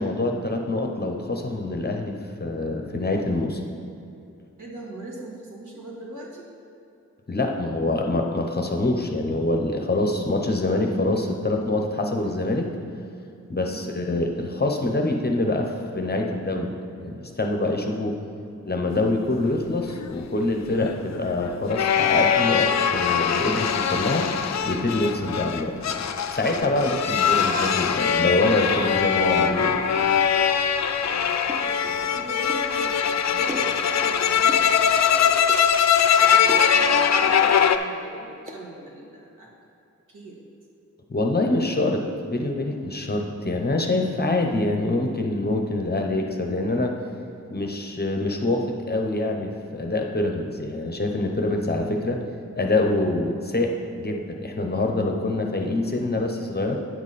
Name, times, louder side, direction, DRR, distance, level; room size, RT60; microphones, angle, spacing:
voice 1, 0.0-3.6 7.3-12.7 13.5-18.1 18.7-24.3 24.6-25.8 26.3-29.8 41.1-42.0 42.3-46.9 47.5-52.2 52.5-56.8, left 2 dB, 30° left, 2 dB, 0.9 m, -25 dB
voice 2, 4.6-6.5 13.6-13.8 17.7-18.1 31.0-35.5 36.2-39.5 40.1-40.4, right 2 dB, 85° right, -3 dB, 1.8 m, -41 dB
sound 1, 20.0-37.8, left 7 dB, 60° left, 0.5 m, -22 dB
sound 2, 31.5-31.7 32.5-32.7 33.5-33.8 34.5-34.7 35.5-35.6 36.5-36.8 37.5-37.7 38.5-38.6, equal, 20° right, 0.8 m, -35 dB
9.2 x 7.1 x 4.2 m, 2.7 s
wide cardioid pair, 100°, 30 cm